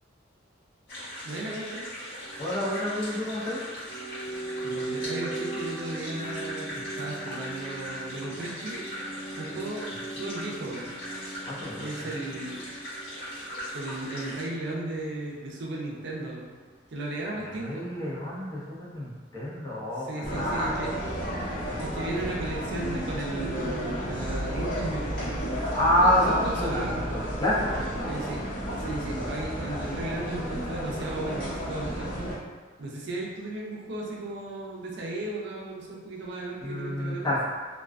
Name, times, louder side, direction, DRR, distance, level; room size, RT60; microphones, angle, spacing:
sound 1, 0.9-14.4, left 1 dB, 65° left, 1.1 m, -39 dB
voice 1, 1.2-1.8 4.6-8.8 9.4-10.9 11.8-12.6 13.7-16.5 16.9-17.9 20.1-20.9 21.8-25.1 26.0-26.9 28.1-28.4 28.8-32.2 32.8-37.3, right 2 dB, 65° right, -3 dB, 0.5 m, -35 dB
sound 2, 2.2-16.2 16.5-16.6, right 3 dB, 10° right, 0.9 m, -40 dB
voice 2, 2.4-3.6 11.4-11.9 17.6-20.9 25.7-27.8 36.6-37.4, left 1 dB, 20° left, -8 dB, 0.6 m, -28 dB
sound 3, 20.2-32.3, equal, 45° left, 0.9 m, -32 dB
2.3 x 2.2 x 2.4 m, 1.4 s
head